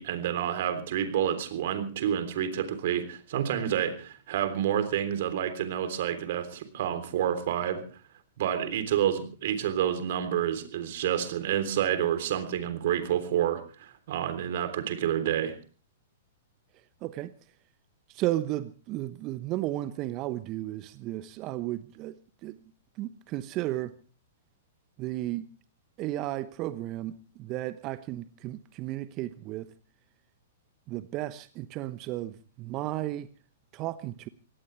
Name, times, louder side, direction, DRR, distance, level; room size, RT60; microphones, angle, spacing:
voice 1, 0.0-7.8 8.4-15.6, right 10 dB, 55° right, 3.4 m, -29 dB
voice 2, 17.0-17.3 18.1-22.1 22.4-22.6 23.0-23.9 25.0-25.5 26.0-29.7 30.9-33.3 33.7-34.3, right 15 dB, 35° right, 1.0 m, -34 dB
24.0 x 18.0 x 3.3 m
figure-of-eight pair, 110°, 0 cm